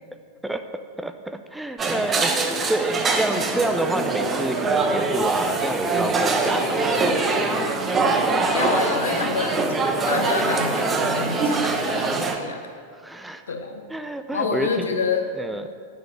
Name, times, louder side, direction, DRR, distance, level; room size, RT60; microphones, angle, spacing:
voice 1, 1.0-2.3 2.6-7.6 13.0-13.4 13.9-14.9 15.3-15.7, right 2 dB, 5° right, 8 dB, 0.5 m, -29 dB
sound 1, 1.8-12.4, right 3 dB, 20° right, 1.0 m, -23 dB
voice 2, 8.5-12.7 13.5-13.8 14.3-15.3, left 5 dB, 70° left, 4 dB, 1.2 m, -28 dB
11.0 x 7.0 x 6.7 m, 2.3 s
figure-of-eight pair, 90°, 0 cm